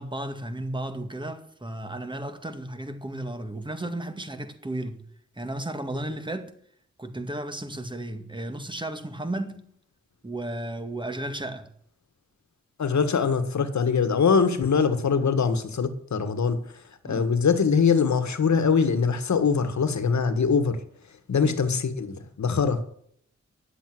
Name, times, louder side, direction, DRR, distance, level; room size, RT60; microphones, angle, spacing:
voice 1, 0.0-5.1 5.4-6.5 7.0-9.7 10.2-11.7 17.1-17.3 21.4-21.6, right 1 dB, 15° right, 2.1 m, -34 dB
voice 2, 12.8-16.6 17.0-20.8 21.3-22.8, left 5 dB, 75° left, 1.7 m, -23 dB
11.0 x 7.8 x 9.1 m
cardioid pair, 70°, 29 cm